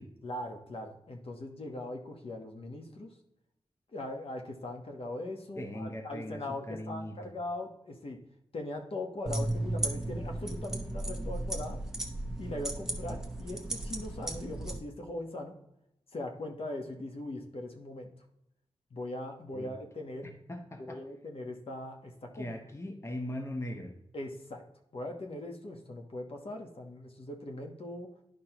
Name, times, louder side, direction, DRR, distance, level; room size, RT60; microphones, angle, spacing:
voice 1, 0.2-3.1 3.9-8.2 8.5-11.8 12.4-15.6 16.1-18.1 18.9-20.3 20.8-22.5 24.1-24.6 24.9-28.1, left 1 dB, 60° left, 3 dB, 1.2 m, -40 dB
voice 2, 5.6-7.3 19.5-19.7 20.5-21.0 22.3-23.9, left 1 dB, 25° left, 4 dB, 0.9 m, -39 dB
sound 1, 9.3-14.8, right 1 dB, 5° right, 1.0 m, -35 dB
11.5 x 5.2 x 3.0 m, 0.82 s
wide cardioid pair, 120°, 11 cm